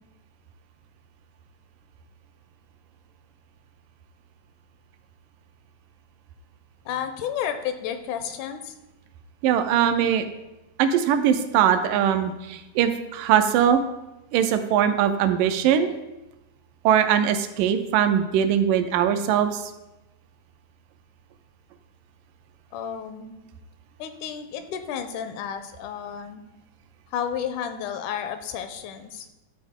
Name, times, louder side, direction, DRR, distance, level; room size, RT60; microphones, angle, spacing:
voice 1, 6.9-8.7 22.7-23.3 24.0-26.4 27.1-29.3, left 8 dB, 80° left, 8 dB, 2.0 m, -32 dB
voice 2, 9.4-10.3 10.8-13.8 14.3-15.9 16.9-19.6, right 9 dB, 85° right, 8 dB, 2.2 m, -21 dB
12.5 x 4.4 x 3.6 m, 1.0 s
omnidirectional pair, 3.7 m